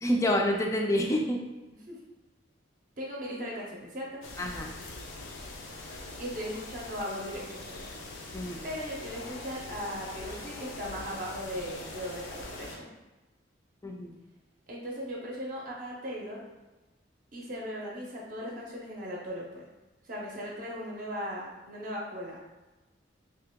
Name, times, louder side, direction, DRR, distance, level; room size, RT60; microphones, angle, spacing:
voice 1, 0.0-1.4 4.4-4.7 8.3-8.6 13.8-14.1, left 1 dB, 15° left, 1 dB, 0.3 m, -27 dB
voice 2, 3.0-4.2 6.2-7.9 8.6-12.9 14.7-16.4 17.3-19.7 20.0-22.4, equal, 45° right, -3 dB, 0.6 m, -38 dB
sound 1, 4.2-12.8, left 2 dB, 85° left, 0.6 m, -43 dB
2.9 x 2.8 x 3.5 m, 1.1 s
head